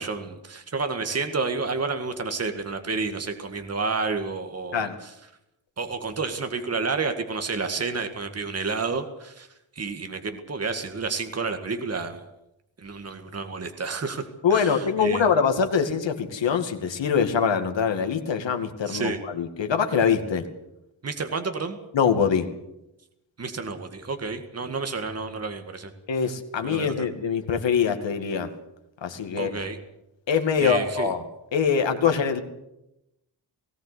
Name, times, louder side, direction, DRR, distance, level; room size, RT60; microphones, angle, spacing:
voice 1, 0.0-5.1 5.8-9.5 9.8-12.3 12.8-15.3 18.9-19.2 21.0-21.8 23.4-25.9 26.6-27.1 29.4-29.8 30.6-31.1, right 4 dB, 35° right, 7 dB, 2.0 m, -30 dB
voice 2, 14.4-20.5 21.9-22.5 26.1-28.5 29.0-29.5 30.3-31.2 31.5-32.4, left 6 dB, 70° left, 6 dB, 2.3 m, -23 dB
19.0 x 17.0 x 8.3 m, 0.88 s
wide cardioid pair, 145°, 46 cm